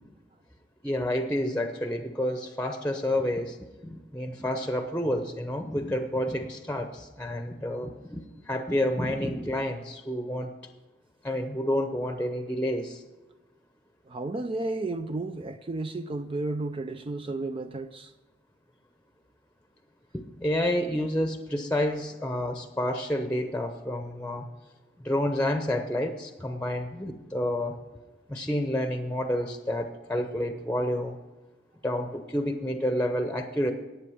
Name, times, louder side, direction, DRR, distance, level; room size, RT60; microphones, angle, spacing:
voice 1, 0.8-3.6 3.9-8.2 8.5-10.5 11.2-13.0 20.1-24.5 25.0-27.8 28.3-31.2 31.8-33.7, left 1 dB, 5° left, 0.8 m, -29 dB
voice 2, 14.1-18.1, right 2 dB, 30° right, 0.4 m, -32 dB
11.0 x 8.7 x 6.3 m
head